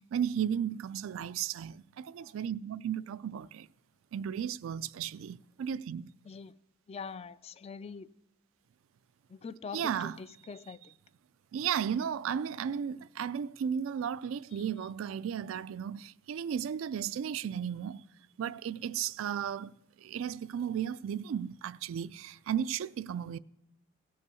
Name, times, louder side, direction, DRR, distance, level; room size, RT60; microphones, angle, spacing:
voice 1, 0.0-3.7 4.1-6.1 9.7-10.2 11.5-18.0 18.4-19.7 20.0-23.4, right 8 dB, 75° right, 0.3 m, -34 dB
voice 2, 6.9-8.1 9.3-10.8, left 5 dB, 30° left, 0.3 m, -43 dB
16.0 x 5.5 x 6.9 m
head